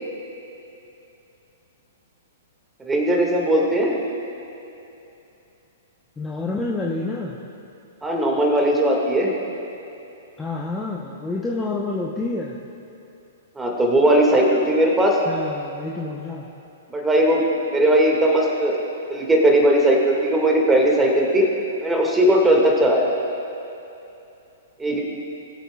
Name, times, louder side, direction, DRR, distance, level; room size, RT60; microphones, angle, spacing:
voice 1, 2.8-4.0 8.0-9.3 13.6-15.2 16.9-18.8 19.1-21.4 21.8-23.2 24.8-25.0, right 1 dB, 10° right, -1 dB, 1.9 m, -18 dB
voice 2, 6.2-7.4 10.4-12.6 15.3-16.5, left 3 dB, 10° left, -3 dB, 0.8 m, -28 dB
20.5 x 8.1 x 2.4 m, 2.8 s
figure-of-eight pair, 110°, 0 cm